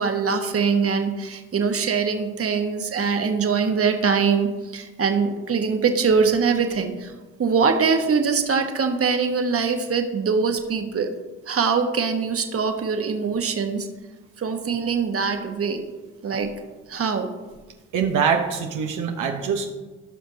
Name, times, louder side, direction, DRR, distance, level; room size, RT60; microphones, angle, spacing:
voice 1, 0.0-7.1 7.4-11.2 11.5-13.9 14.4-15.8 16.2-16.5 16.9-17.3, right 5 dB, 50° right, 5 dB, 1.4 m, -23 dB
voice 2, 17.9-19.7, right 6 dB, 80° right, 2 dB, 1.1 m, -23 dB
17.0 x 5.9 x 2.8 m, 1.2 s
supercardioid pair, 65°, 31 cm